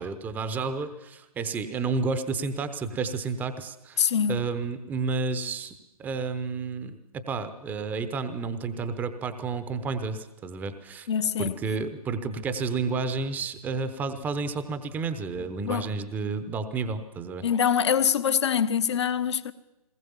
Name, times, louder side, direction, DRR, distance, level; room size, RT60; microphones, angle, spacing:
voice 1, 0.0-5.7 6.0-7.0 7.3-11.1 11.4-17.4, right 4 dB, 10° right, 0.9 m, -31 dB
voice 2, 4.0-4.5 11.1-11.6 15.6-15.9 17.4-19.5, left 8 dB, 45° left, 1.1 m, -24 dB
22.0 x 19.5 x 7.2 m
figure-of-eight pair, 140°, 19 cm